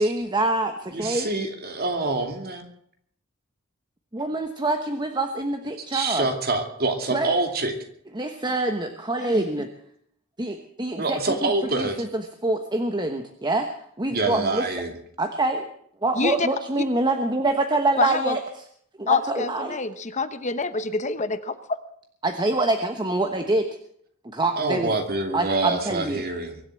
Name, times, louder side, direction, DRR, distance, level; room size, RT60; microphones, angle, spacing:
voice 1, 0.0-1.3 4.1-6.3 7.1-7.3 8.1-9.7 10.4-11.5 11.8-13.7 14.0-14.6 15.2-15.7 16.0-18.7 19.0-19.8 22.2-23.7 24.3-24.9 25.3-26.3, right 2 dB, 20° right, 5 dB, 1.1 m, -25 dB
voice 2, 0.9-2.7 5.8-7.7 11.0-12.0 14.1-14.9 24.6-26.6, right 3 dB, 45° right, 4 dB, 2.7 m, -26 dB
voice 3, 16.2-16.5 18.0-18.3 19.1-21.5, left 4 dB, 35° left, 11 dB, 1.0 m, -26 dB
23.0 x 8.1 x 7.5 m, 0.67 s
head